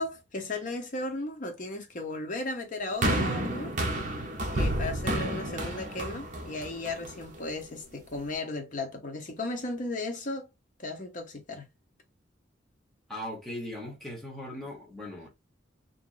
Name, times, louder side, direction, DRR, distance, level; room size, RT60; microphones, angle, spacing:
voice 1, 0.0-3.7 4.5-10.5 10.8-11.7, left 2 dB, 40° left, 0.8 m, -35 dB
sound 1, 3.0-7.4 8.2-8.3, right 1 dB, 40° right, 0.8 m, -30 dB
voice 2, 13.1-15.3, left 1 dB, ahead, 1.1 m, -39 dB
3.0 x 2.5 x 2.4 m
head